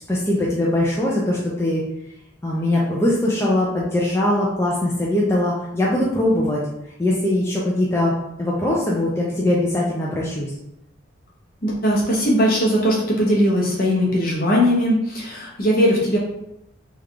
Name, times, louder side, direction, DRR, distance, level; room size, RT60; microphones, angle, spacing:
voice 1, 0.1-1.8 2.4-6.6 7.0-8.1 8.4-10.5, left 1 dB, 15° left, -5 dB, 0.4 m, -21 dB
voice 2, 11.6-16.2, equal, 45° left, -4 dB, 0.9 m, -19 dB
3.4 x 2.4 x 3.3 m, 0.83 s
head